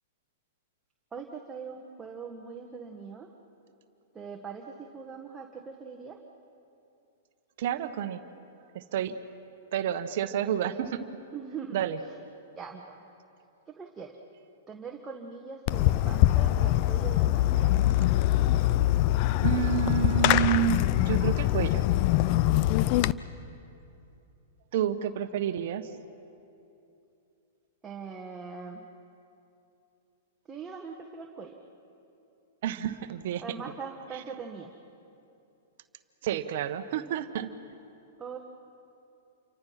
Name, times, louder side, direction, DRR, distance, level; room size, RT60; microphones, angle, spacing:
voice 1, 1.1-3.3 4.1-6.3 11.3-12.2 12.5-13.0 13.8-14.2 14.7-17.7 25.0-25.1 27.8-28.8 30.5-31.6 33.4-34.7 38.2-38.4, right 5 dB, 15° right, 1 dB, 1.7 m, -41 dB
voice 2, 7.6-8.2 8.7-9.1 9.7-11.1 11.7-12.0 19.4-21.8 24.7-25.9 32.6-33.4 36.2-37.5, right 10 dB, 60° right, 10 dB, 1.2 m, -29 dB
Fireworks, 15.7-23.1, left 15 dB, 45° left, 0.5 m, -23 dB
28.5 x 24.0 x 5.9 m, 2.7 s
hypercardioid pair, 120°, 0 cm